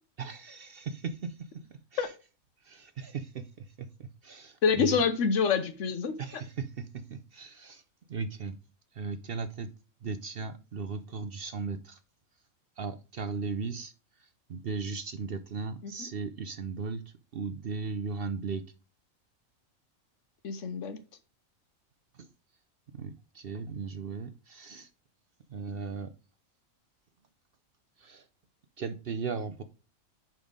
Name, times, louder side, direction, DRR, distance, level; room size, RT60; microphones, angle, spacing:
voice 1, 0.2-2.1 2.6-5.0 6.2-7.8 8.1-8.6 8.9-9.7 10.0-12.0 12.8-13.9 14.2-17.0 17.3-18.6 22.2-22.3 22.9-24.9 25.5-26.1 28.0-28.3 28.8-29.6, right 4 dB, 55° right, 10 dB, 0.7 m, -37 dB
voice 2, 4.6-6.4 15.8-16.1 20.4-21.0, left 6 dB, 70° left, 10 dB, 1.1 m, -27 dB
5.9 x 5.3 x 5.1 m, 0.34 s
omnidirectional pair, 1.4 m